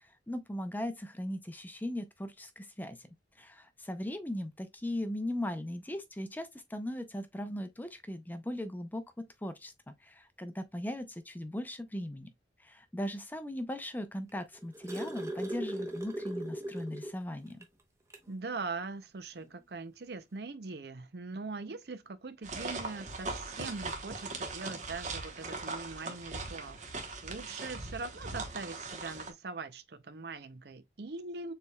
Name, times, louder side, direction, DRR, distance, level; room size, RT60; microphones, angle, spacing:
voice 1, 0.3-3.0 3.4-9.7 10.0-12.3 12.6-17.6, left 1 dB, 10° left, 0.6 m, -38 dB
sound 1, 14.3-17.2 17.6-17.7 18.1-18.3 19.4-19.5, right 1 dB, 15° right, 0.9 m, -38 dB
voice 2, 18.3-31.5, right 3 dB, 60° right, 0.6 m, -42 dB
sound 2, 22.4-29.3, right 3 dB, 40° right, 1.1 m, -40 dB
7.0 x 3.3 x 2.3 m
head